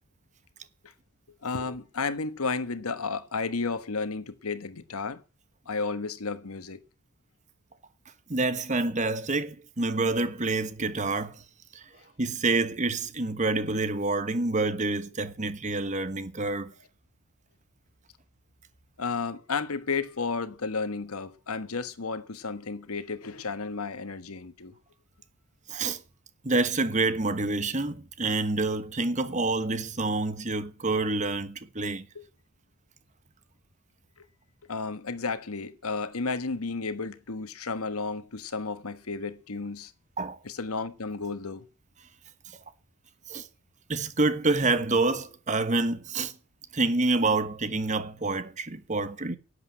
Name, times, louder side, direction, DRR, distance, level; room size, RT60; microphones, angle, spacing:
voice 1, 1.4-5.2 5.7-6.8 19.0-24.7 32.1-32.2 34.7-39.9 40.4-41.7, left 4 dB, 85° left, 1.3 m, -32 dB
voice 2, 8.3-11.3 11.7-11.8 12.2-16.7 25.7-26.0 26.4-32.1 40.2-40.4 43.3-43.5 43.9-46.3 46.7-49.4, right 3 dB, 35° right, 1.1 m, -27 dB
11.5 x 8.2 x 9.1 m
head